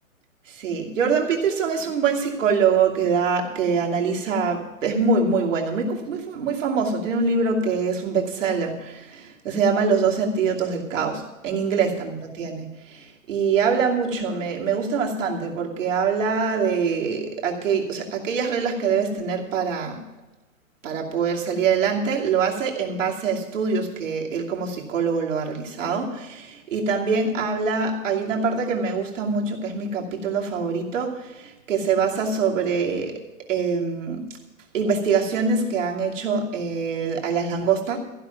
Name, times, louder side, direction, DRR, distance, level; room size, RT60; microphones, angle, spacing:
voice 1, 0.5-20.0 20.8-33.2 33.5-34.3 34.7-38.0, right 5 dB, 60° right, -1 dB, 2.9 m, -24 dB
15.0 x 6.0 x 9.3 m, 1.1 s
hypercardioid pair, 160°, 42 cm